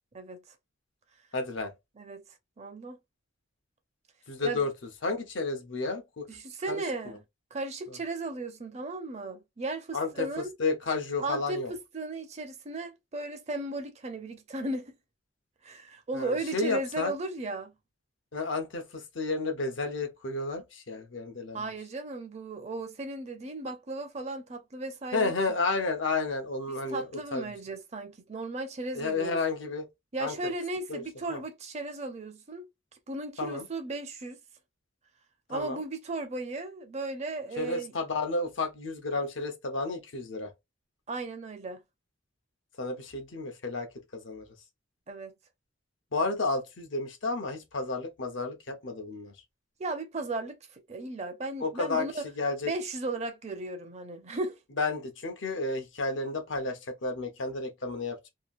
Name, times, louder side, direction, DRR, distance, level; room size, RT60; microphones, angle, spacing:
voice 1, 0.1-0.5 2.0-2.2 2.6-3.0 4.4-4.7 6.3-7.2 7.5-10.5 11.2-15.0 15.6-17.7 21.5-25.3 26.9-29.4 30.1-32.7 33.1-34.4 35.5-37.9 41.1-41.8 45.1-45.3 49.8-52.3 52.6-54.6, right 2 dB, 35° right, 0.5 m, -36 dB
voice 2, 1.3-1.7 4.3-4.7 5.0-6.3 6.7-6.8 9.9-11.7 16.1-17.1 18.3-21.6 25.1-27.1 27.3-27.4 28.9-29.9 30.2-30.3 30.9-31.0 31.3-31.4 33.4-33.6 35.5-35.8 37.6-40.5 42.8-43.9 44.1-44.5 46.1-49.3 51.6-52.1 52.4-52.7 54.8-58.3, left 3 dB, 70° left, 0.7 m, -31 dB
2.9 x 2.3 x 2.5 m
head